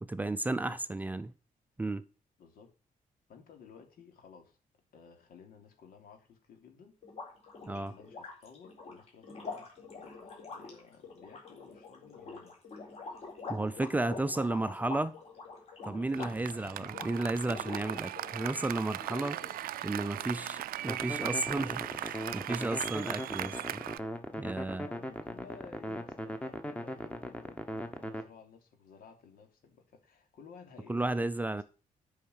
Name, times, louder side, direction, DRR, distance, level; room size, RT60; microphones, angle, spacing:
voice 1, 0.0-1.3 1.8-2.0 7.7-7.9 13.5-15.1 15.8-19.4 19.8-20.6 20.8-23.8 24.4-24.9 30.9-31.6, right 2 dB, 10° right, 0.5 m, -33 dB
voice 2, 2.4-2.7 3.3-4.6 4.9-6.9 7.6-12.6 13.7-15.0 20.0-20.6 21.9-22.1 24.8-31.3, left 5 dB, 80° left, 3.0 m, -55 dB
sound 1, 7.0-18.6 19.0-19.8, left 4 dB, 45° left, 4.1 m, -45 dB
Applause, 16.1-24.0, right 13 dB, 85° right, 0.5 m, -38 dB
sound 2, 20.9-28.2, equal, 10° left, 1.1 m, -39 dB
8.8 x 5.7 x 7.9 m
wide cardioid pair, 180°, 15 cm